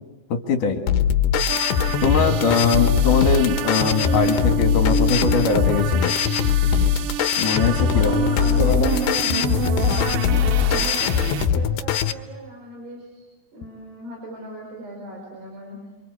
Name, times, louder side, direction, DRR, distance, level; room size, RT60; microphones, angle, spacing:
voice 1, 0.3-0.8 2.0-6.2 7.4-8.2 8.6-8.9, left 4 dB, 55° left, 5 dB, 2.9 m, -21 dB
sound 1, 0.9-12.1, left 8 dB, 70° left, 2.7 m, -21 dB
sound 2, 1.5-11.5, right 8 dB, 85° right, 3.5 m, -28 dB
voice 2, 7.9-9.0 10.3-13.3 13.5-15.8, right 2 dB, 60° right, 1 dB, 6.9 m, -37 dB
28.5 x 26.0 x 8.1 m, 1.1 s
omnidirectional pair, 5.4 m